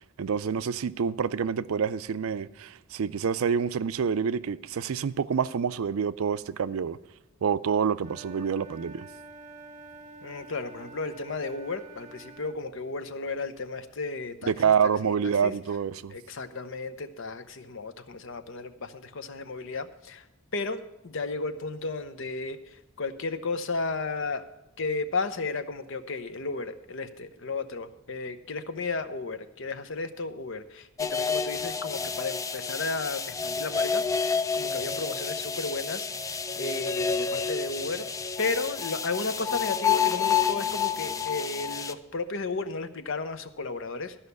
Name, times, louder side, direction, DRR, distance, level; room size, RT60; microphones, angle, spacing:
voice 1, 0.2-7.0 7.4-9.1 14.4-16.1, right 7 dB, 85° right, 0.4 m, -27 dB
Wind instrument woodwind instrument, 8.0-12.6, right 3 dB, 35° right, 0.6 m, -47 dB
voice 2, 10.2-14.5 15.0-15.2 15.4-15.5 16.1-20.2 20.5-24.4 24.8-38.1 38.4-44.2, left 3 dB, 65° left, 0.8 m, -34 dB
sound 1, 31.0-41.9, left 6 dB, 15° left, 0.3 m, -29 dB
13.0 x 5.6 x 8.1 m
head